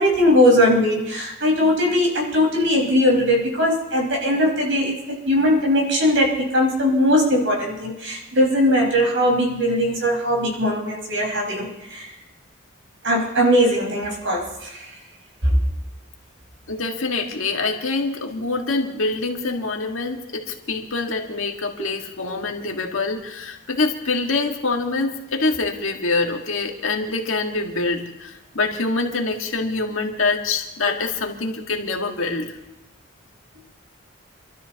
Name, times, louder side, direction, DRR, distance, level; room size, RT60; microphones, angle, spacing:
voice 1, 0.0-12.1 13.0-14.9 15.4-15.6 21.8-21.9, equal, 65° right, -1 dB, 5.2 m, -20 dB
voice 2, 16.7-32.5, left 3 dB, 80° left, 2 dB, 1.9 m, -25 dB
27.5 x 13.0 x 3.0 m, 0.96 s
head